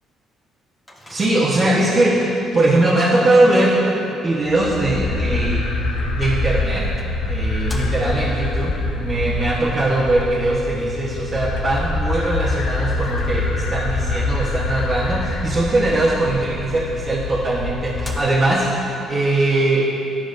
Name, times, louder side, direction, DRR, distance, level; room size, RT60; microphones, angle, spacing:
Microwave oven, 0.9-1.8 6.1-6.2 7.0-8.3 13.0-13.9 17.0-17.1 17.5-17.6 17.9-18.7, equal, 15° left, 1.2 m, -41 dB
voice 1, 1.1-5.7 6.1-6.8 7.2-19.9, right 2 dB, 35° right, -8 dB, 1.1 m, -20 dB
sound 1, 4.5-18.2, left 2 dB, 90° left, 0.5 m, -25 dB
12.0 x 5.0 x 2.6 m, 2.9 s
supercardioid pair, 75°, 0 cm